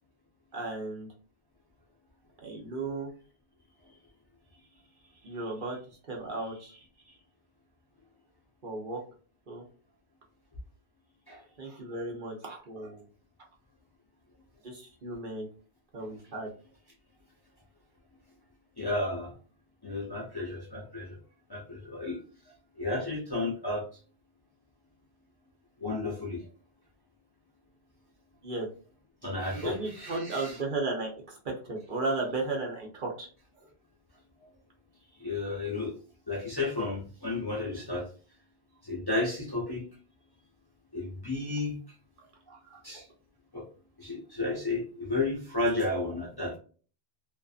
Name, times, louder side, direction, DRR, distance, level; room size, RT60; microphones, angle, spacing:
voice 1, 0.5-1.1 2.4-3.1 5.2-5.8 6.1-6.7 8.6-9.0 9.5-9.6 11.6-13.0 14.6-15.5 15.9-16.5 28.4-28.7 29.5-31.4 31.7-33.3 33.6-33.7 42.5-42.8, right 3 dB, 55° right, -1 dB, 0.8 m, -35 dB
voice 2, 18.8-19.3 19.8-21.2 21.5-22.2 22.8-23.8 25.8-26.4 29.2-30.6 35.2-35.9 36.3-38.1 38.8-39.8 40.9-41.8 42.8-43.1 43.5-43.7 44.0-46.6, left 2 dB, 25° left, -4 dB, 0.6 m, -32 dB
2.5 x 2.4 x 2.4 m, 0.39 s
omnidirectional pair, 1.1 m